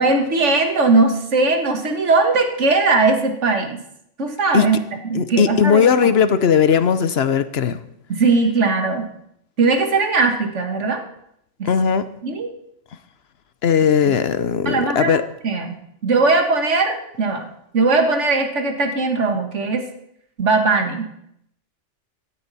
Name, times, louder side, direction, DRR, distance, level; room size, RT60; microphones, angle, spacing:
voice 1, 0.0-3.8 4.2-4.8 5.0-6.1 8.1-9.1 9.6-11.0 11.6-11.7 12.2-12.5 14.7-15.2 15.4-15.7 16.0-17.5 17.7-19.8 20.4-21.1, right 3 dB, 70° right, 5 dB, 1.9 m, -19 dB
voice 2, 5.1-7.8 11.6-12.1 13.6-15.2, left 7 dB, 60° left, 13 dB, 0.9 m, -17 dB
17.0 x 13.0 x 4.1 m, 0.73 s
omnidirectional pair, 1.3 m